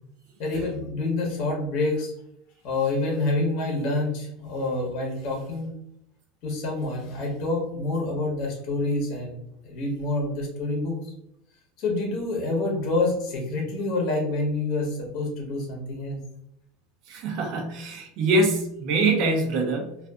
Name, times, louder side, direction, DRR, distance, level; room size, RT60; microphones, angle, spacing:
voice 1, 0.4-2.1 2.6-5.7 6.4-9.4 9.6-11.1 11.8-16.2, left 2 dB, 50° left, -1 dB, 0.9 m, -27 dB
voice 2, 17.1-20.0, right 2 dB, 50° right, 3 dB, 0.5 m, -24 dB
2.5 x 2.4 x 2.3 m, 0.78 s
supercardioid pair, 155°, 0 cm